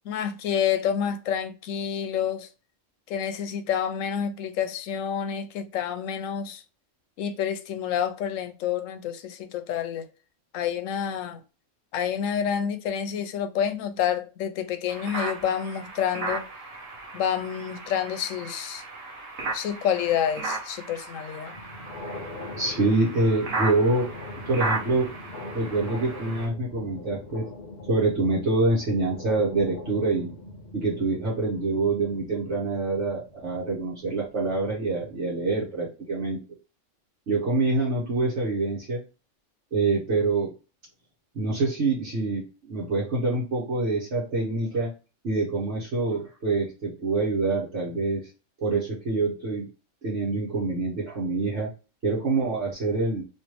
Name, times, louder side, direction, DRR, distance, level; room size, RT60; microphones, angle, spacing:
voice 1, 0.0-2.5 3.1-6.6 7.2-10.1 10.5-11.4 11.9-16.5 17.1-18.8 19.5-21.6, left 8 dB, 85° left, 1.0 m, -28 dB
sound 1, 14.9-26.5, right 3 dB, 85° right, 1.2 m, -35 dB
sound 2, 21.5-35.8, left 2 dB, 50° left, 0.6 m, -42 dB
voice 2, 22.6-24.1 24.4-25.1 25.5-27.4 27.9-30.3 30.7-36.4 37.3-39.0 39.7-40.5 41.3-44.9 45.2-48.3 48.6-49.7 50.0-51.7 52.0-53.2, right 3 dB, 65° right, 1.4 m, -26 dB
3.1 x 3.0 x 3.0 m
omnidirectional pair, 1.3 m